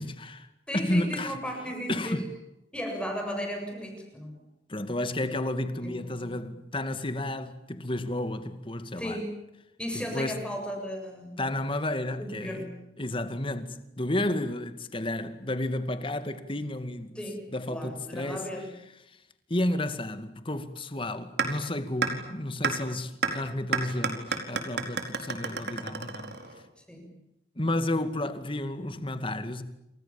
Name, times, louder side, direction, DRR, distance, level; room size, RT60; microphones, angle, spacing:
voice 1, 0.0-0.5 0.7-1.4 1.9-2.3 4.7-9.2 10.1-10.4 11.4-12.7 13.0-17.2 17.5-18.5 19.1-19.2 19.5-26.4 27.6-29.6, left 1 dB, 30° left, 2.3 m, -31 dB
voice 2, 0.7-2.2 2.7-4.4 5.8-6.3 8.9-9.4 9.8-11.4 12.2-12.8 17.2-18.7 26.9-27.1, equal, 5° left, 7.4 m, -36 dB
sound 1, 21.4-21.5 22.0-22.1 22.6-22.7 23.2-23.3 23.7-26.6, right 5 dB, 70° right, 4.7 m, -28 dB
29.0 x 27.0 x 7.3 m
head